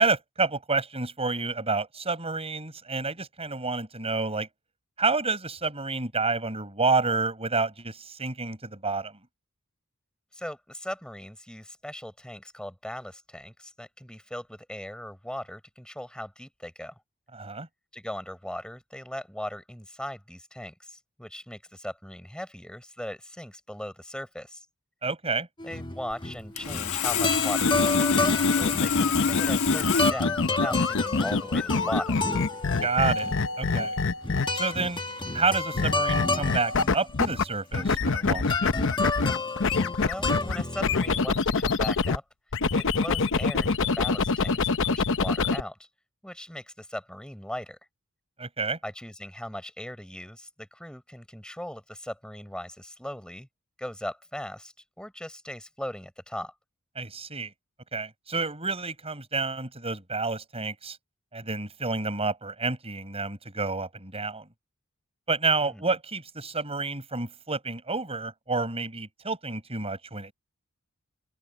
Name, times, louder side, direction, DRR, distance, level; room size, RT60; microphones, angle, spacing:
voice 1, 0.0-4.5 5.0-9.2 17.3-17.7 25.0-25.5 32.8-34.0 34.5-35.0 35.3-38.7 48.4-48.8 57.0-57.5 57.9-61.0 61.3-64.5 65.3-70.3, right 3 dB, 30° right, 6.9 m, -29 dB
voice 2, 10.3-16.9 17.9-24.7 25.6-32.2 40.1-42.2 42.7-45.9 46.2-47.8 48.8-53.5 53.8-56.5 65.6-65.8, left 1 dB, 5° left, 5.7 m, -38 dB
sound 1, 25.6-41.2, left 2 dB, 20° left, 1.3 m, -31 dB
Sawing, 26.6-30.1, left 6 dB, 80° left, 1.3 m, -26 dB
sound 2, 27.5-34.7 35.8-37.4 37.7-42.2 42.5-45.6, left 4 dB, 65° left, 0.9 m, -26 dB
head